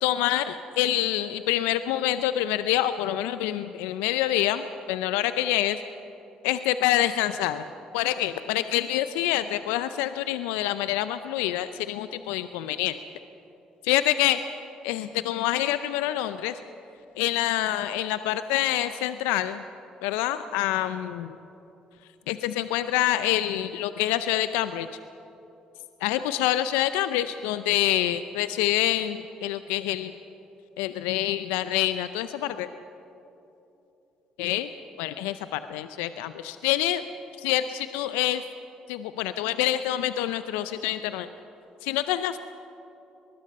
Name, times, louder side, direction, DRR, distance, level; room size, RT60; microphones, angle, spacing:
voice 1, 0.0-5.8 6.4-7.6 7.9-13.0 13.8-14.4 14.8-16.5 17.2-19.6 20.0-21.3 22.3-24.9 26.0-30.1 30.8-32.7 34.4-34.7 35.0-37.0 37.4-38.4 38.9-41.3 41.8-42.4, left 13 dB, 80° left, 12 dB, 0.6 m, -26 dB
24.5 x 20.0 x 5.4 m, 2.9 s
hypercardioid pair, 50°, 3 cm